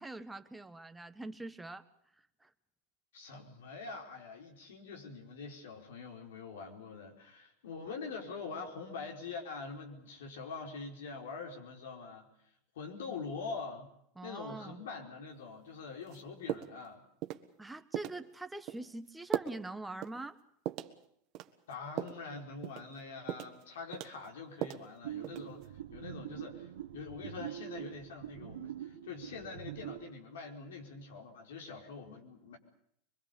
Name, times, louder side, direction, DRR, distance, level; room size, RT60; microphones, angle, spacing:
voice 1, 0.0-1.8 2.4-2.5 14.1-14.8 17.6-20.4, right 2 dB, 10° right, 9 dB, 1.4 m, -43 dB
voice 2, 3.1-12.3 12.7-13.9 14.2-17.0 21.7-32.6, left 4 dB, 85° left, 1 dB, 4.9 m, -44 dB
sound 1, 16.1-16.2 16.5-16.9 17.2-17.5 17.9-18.2 18.7-18.8 19.3-19.6 20.0-20.2 20.7-21.0 21.3-22.2 22.6-22.9 23.3-23.6 23.9-24.9 25.2-25.6, right 12 dB, 55° right, 1.6 m, -38 dB
sound 2, 25.0-30.1, right 12 dB, 85° right, 1.3 m, -44 dB
23.5 x 23.0 x 7.0 m, 0.72 s
hypercardioid pair, 105°, 0 cm